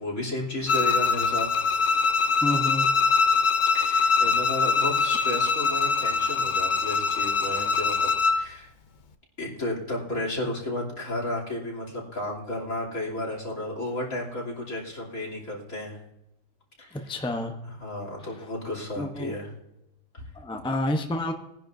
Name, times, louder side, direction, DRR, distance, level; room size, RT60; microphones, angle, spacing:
voice 1, 0.0-1.7 3.7-8.7 9.4-16.0 16.8-17.1 17.7-19.5 20.1-20.2, left 1 dB, 75° left, -2 dB, 3.4 m, -33 dB
Bowed string instrument, 0.7-8.4, left 5 dB, 50° left, 0.6 m, -23 dB
voice 2, 2.4-2.9 17.1-17.6 19.0-19.3 20.3-21.3, left 1 dB, 5° left, 4 dB, 0.7 m, -28 dB
21.0 x 10.0 x 2.6 m, 0.87 s
omnidirectional pair, 1.4 m